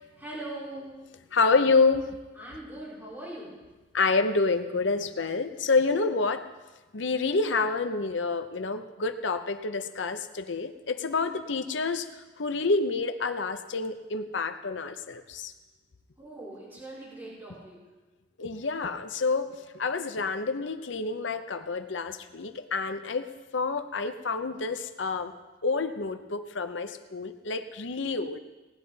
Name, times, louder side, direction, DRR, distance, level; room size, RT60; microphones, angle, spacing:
voice 1, 0.2-0.9 2.4-3.6 11.1-11.4 16.2-17.8, right 1 dB, 10° right, -9 dB, 4.5 m, -41 dB
voice 2, 1.3-2.1 3.9-6.5 6.9-12.1 12.4-15.5 18.4-25.3 25.6-28.4, left 4 dB, 80° left, 9 dB, 0.8 m, -28 dB
18.5 x 10.5 x 4.1 m, 1.2 s
head